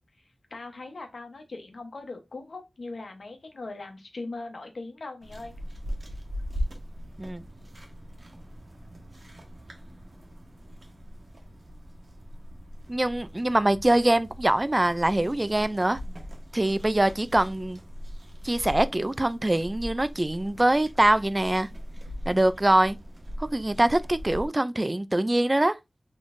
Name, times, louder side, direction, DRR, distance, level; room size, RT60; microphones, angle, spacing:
voice 1, 0.5-5.6, left 3 dB, 80° left, 0.9 m, -40 dB
sound 1, 5.2-24.5, equal, 50° right, 1.2 m, -40 dB
voice 2, 12.9-16.0 16.5-17.8 18.4-21.7 22.3-23.0 23.4-25.8, right 1 dB, 30° right, 0.3 m, -23 dB
3.9 x 3.1 x 2.5 m
wide cardioid pair, 60°, 0 cm